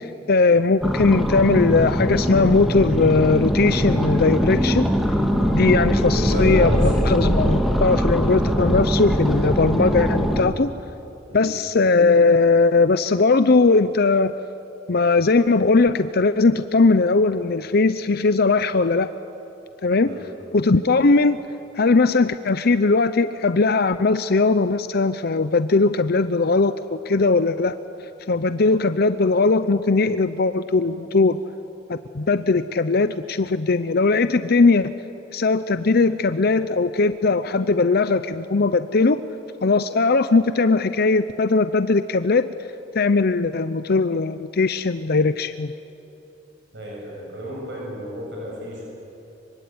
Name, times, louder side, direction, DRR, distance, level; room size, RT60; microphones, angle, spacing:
voice 1, 0.0-4.9 5.5-10.7 11.3-14.3 14.9-19.1 19.8-20.1 20.5-21.4 21.7-27.7 28.3-31.4 31.9-35.0 35.3-39.2 39.6-42.5 42.9-45.7, left 3 dB, 55° left, 12 dB, 0.7 m, -19 dB
sound 1, 0.8-10.4, equal, ahead, 1.9 m, -21 dB
voice 2, 6.0-6.9 7.4-7.6 11.3-11.5 20.0-20.2 46.7-48.8, right 1 dB, 65° right, -3 dB, 7.8 m, -31 dB
25.0 x 24.5 x 9.5 m, 2.9 s
head